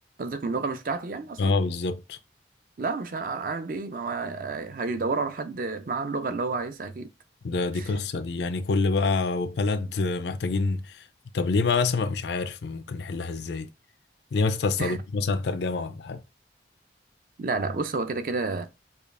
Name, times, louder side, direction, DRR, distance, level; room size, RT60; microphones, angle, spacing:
voice 1, 0.2-1.6 2.8-7.1 7.8-7.9 14.8-15.0 17.4-18.7, right 3 dB, 50° right, 0.5 m, -30 dB
voice 2, 1.4-2.2 7.4-11.0 11.3-13.7 14.3-16.2, left 3 dB, 70° left, 0.4 m, -26 dB
4.9 x 2.4 x 2.5 m
head